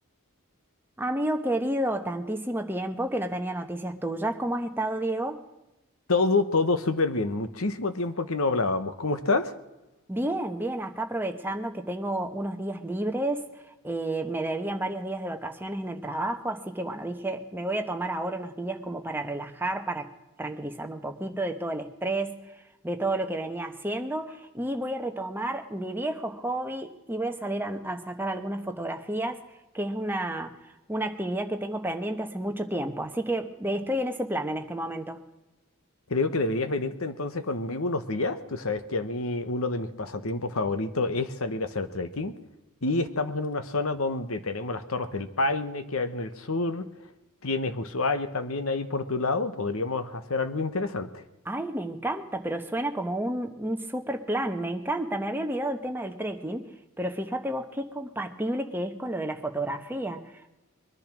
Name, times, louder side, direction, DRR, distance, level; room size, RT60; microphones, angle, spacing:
voice 1, 1.0-5.4 10.1-13.5 13.8-20.1 20.4-22.4 22.8-29.4 29.7-30.5 30.9-35.2 51.4-56.7 57.0-60.5, right 1 dB, 10° right, 5 dB, 1.0 m, -31 dB
voice 2, 6.1-9.5 36.1-42.3 42.8-46.9 47.4-51.2, left 3 dB, 70° left, 10 dB, 1.2 m, -28 dB
22.0 x 10.5 x 6.2 m, 0.99 s
head